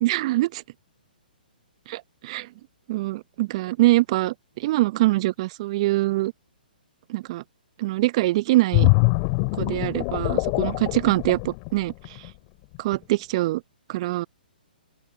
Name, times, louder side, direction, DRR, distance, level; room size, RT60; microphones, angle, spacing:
voice 1, 0.0-0.6 1.9-2.5 2.9-6.3 7.1-7.4 7.8-8.9 9.6-12.2 12.8-13.6 13.9-14.3, right 18 dB, 40° right, 0.7 m, -24 dB
sound 1, 8.7-12.3 12.7-13.0, left 35 dB, 35° left, 2.5 m, -23 dB
open air
figure-of-eight pair, 125°, 5 cm